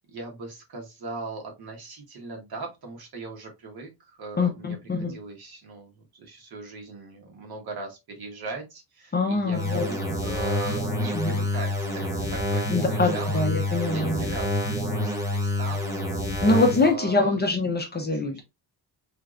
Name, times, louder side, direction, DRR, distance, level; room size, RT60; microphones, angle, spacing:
voice 1, 0.1-16.0 16.8-17.4 18.0-18.4, right 3 dB, 60° right, 1.3 m, -39 dB
voice 2, 4.4-5.2 9.1-9.9 11.1-11.4 12.7-14.2 16.4-18.4, left 2 dB, 25° left, 0.6 m, -24 dB
sound 1, 9.5-16.9, left 1 dB, 5° right, 0.8 m, -28 dB
3.3 x 3.0 x 2.5 m
cardioid pair, 150°, 42 cm